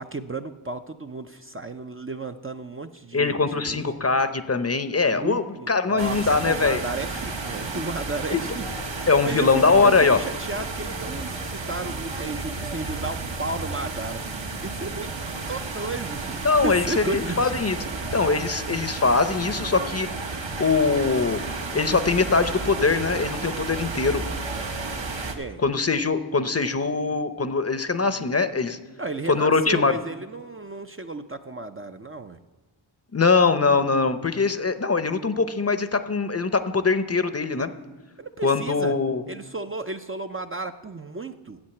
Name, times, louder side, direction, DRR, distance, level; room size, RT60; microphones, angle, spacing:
voice 1, 0.0-3.9 5.1-14.2 14.6-15.1 15.5-17.5 25.3-25.6 29.0-32.4 38.2-38.9 39.3-41.6, right 3 dB, 25° right, 6 dB, 0.5 m, -34 dB
voice 2, 3.1-6.8 8.3-8.4 9.1-10.2 16.4-20.1 20.6-21.4 21.7-24.2 25.6-28.8 29.3-29.9 33.1-37.7 38.4-39.2, left 4 dB, 30° left, 11 dB, 0.7 m, -22 dB
sound 1, 6.0-25.3, right 3 dB, 65° right, 1.3 m, -32 dB
8.7 x 7.8 x 7.7 m, 1.3 s
cardioid pair, 50°, 48 cm